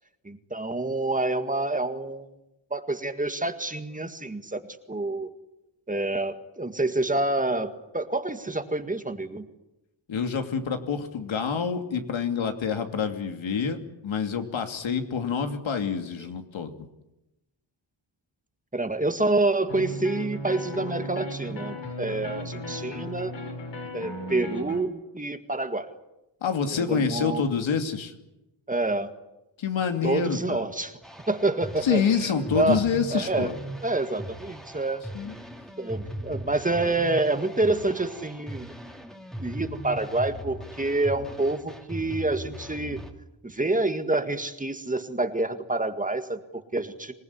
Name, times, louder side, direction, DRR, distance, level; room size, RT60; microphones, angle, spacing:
voice 1, 0.2-2.3 2.7-4.6 4.9-5.3 5.9-9.4 18.7-23.3 23.9-25.9 26.7-27.4 28.7-29.1 30.0-31.0 31.3-32.8 33.1-33.5 33.8-35.0 35.8-38.7 39.4-43.0 43.4-47.1, right 2 dB, 15° right, 8 dB, 1.9 m, -27 dB
voice 2, 10.1-13.8 14.0-16.7 26.4-28.1 29.6-30.6 31.8-33.5 35.1-35.4, left 6 dB, 85° left, 6 dB, 2.9 m, -27 dB
sound 1, 19.7-24.8, equal, 65° left, 5.9 m, -36 dB
sound 2, 31.0-43.1, right 1 dB, ahead, 2.7 m, -39 dB
26.5 x 19.5 x 9.8 m, 0.94 s
wide cardioid pair, 120°, 45 cm